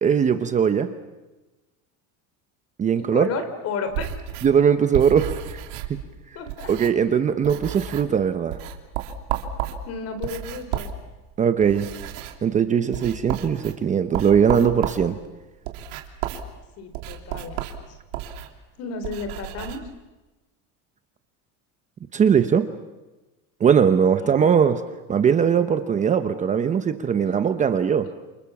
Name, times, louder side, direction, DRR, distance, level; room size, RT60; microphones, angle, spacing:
voice 1, 0.0-0.9 2.8-3.3 4.4-5.6 6.7-8.6 11.4-11.9 12.4-15.2 22.1-22.7 23.6-24.8 25.1-28.1, right 7 dB, 20° right, 9 dB, 0.9 m, -20 dB
voice 2, 3.0-4.1 6.3-6.7 9.9-10.9 16.8-17.6 18.8-19.8 24.2-24.5 27.2-27.3, left 5 dB, 40° left, 9 dB, 4.0 m, -32 dB
sound 1, 3.9-7.2 7.4-8.2 8.5-19.8, right 10 dB, 85° right, 3.1 m, -33 dB
29.0 x 28.5 x 7.2 m, 1.1 s
cardioid pair, 170°, 36 cm